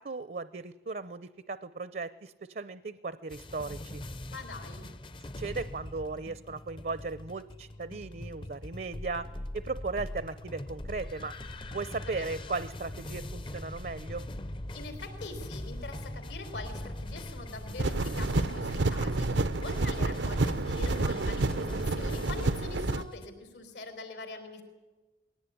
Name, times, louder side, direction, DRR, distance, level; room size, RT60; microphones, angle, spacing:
voice 1, 0.0-4.0 5.4-9.3 9.5-11.3 11.7-14.2, right 3 dB, 55° right, 15 dB, 0.6 m, -37 dB
sound 1, 3.3-23.3, left 1 dB, 30° left, 0.6 m, -41 dB
voice 2, 4.3-4.9 14.7-24.6, left 3 dB, 80° left, 7 dB, 4.1 m, -43 dB
sound 2, 17.8-23.0, right 2 dB, 90° right, 0.8 m, -29 dB
21.0 x 17.5 x 10.0 m, 1.2 s
head